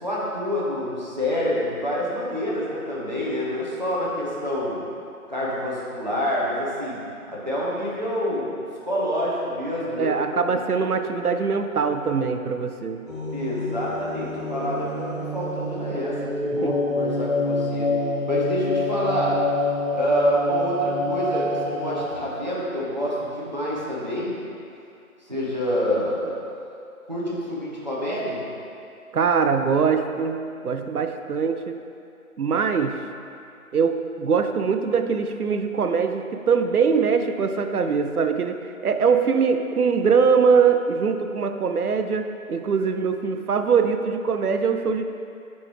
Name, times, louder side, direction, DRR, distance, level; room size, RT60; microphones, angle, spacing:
voice 1, 0.0-4.8 5.3-7.0 7.3-8.5 8.8-10.2 10.5-10.6 13.3-17.9 18.2-19.3 19.9-24.3 25.3-26.5 27.1-28.4, equal, 30° right, -7 dB, 0.9 m, -27 dB
voice 2, 10.0-13.1 16.5-16.8 29.1-31.8 32.4-33.0 33.7-38.6 38.8-45.0, right 5 dB, 80° right, 7 dB, 0.6 m, -22 dB
sound 1, 13.1-22.1, left 2 dB, 30° left, 1.4 m, -27 dB
9.3 x 3.6 x 3.1 m, 2.5 s
figure-of-eight pair, 170°, 44 cm